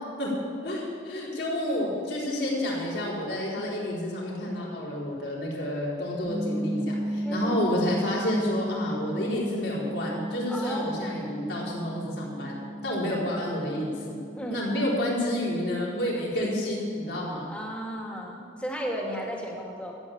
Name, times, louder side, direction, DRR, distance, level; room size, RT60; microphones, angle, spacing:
voice 1, 0.6-12.6 12.8-14.1 14.5-17.5, left 1 dB, 75° left, -5 dB, 4.1 m, -29 dB
sound 1, 6.2-15.9, equal, 85° right, 4.3 m, -35 dB
voice 2, 7.2-7.5 10.5-11.4 12.8-13.0 14.3-14.6 17.5-19.9, equal, 5° left, -2 dB, 2.1 m, -35 dB
13.5 x 8.8 x 8.6 m, 2.3 s
head